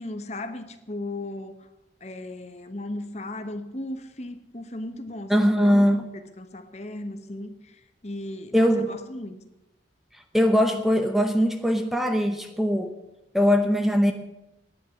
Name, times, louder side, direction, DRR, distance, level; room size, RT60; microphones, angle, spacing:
voice 1, 0.0-1.6 2.0-7.7 8.0-9.4, left 1 dB, 35° left, 9 dB, 1.0 m, -36 dB
voice 2, 5.3-6.1 8.5-8.9 10.1-12.9 13.3-14.1, equal, ahead, 6 dB, 0.7 m, -21 dB
10.0 x 9.1 x 9.4 m, 0.95 s
head